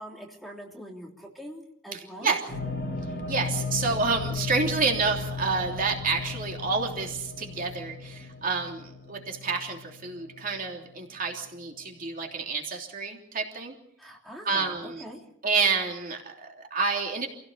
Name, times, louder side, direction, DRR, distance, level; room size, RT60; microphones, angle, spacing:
voice 1, 0.0-2.4 14.0-15.2, equal, ahead, -1 dB, 3.2 m, -43 dB
voice 2, 1.9-2.4 3.3-13.7 14.4-15.0 15.4-17.3, right 4 dB, 45° right, 1 dB, 3.2 m, -29 dB
sound 1, 2.5-11.4, left 4 dB, 50° left, 7.4 m, -36 dB
27.5 x 17.0 x 6.8 m, 0.73 s
head